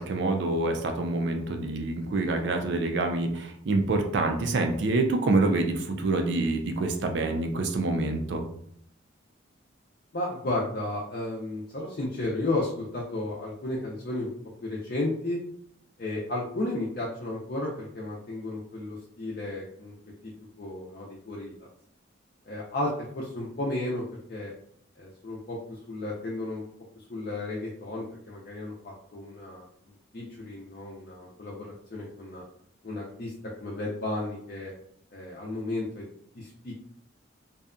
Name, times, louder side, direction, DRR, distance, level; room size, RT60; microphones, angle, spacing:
voice 1, 0.0-8.4, right 2 dB, 60° right, 4 dB, 0.4 m, -26 dB
voice 2, 10.1-14.3 14.6-15.4 16.0-19.9 20.2-20.3 20.6-21.6 22.5-24.0 24.3-24.5 25.0-26.6 27.1-32.4 32.8-33.3 33.6-34.7 35.1-36.1 36.3-36.9, left 2 dB, 50° left, -4 dB, 0.4 m, -33 dB
2.7 x 2.2 x 2.4 m, 0.69 s
head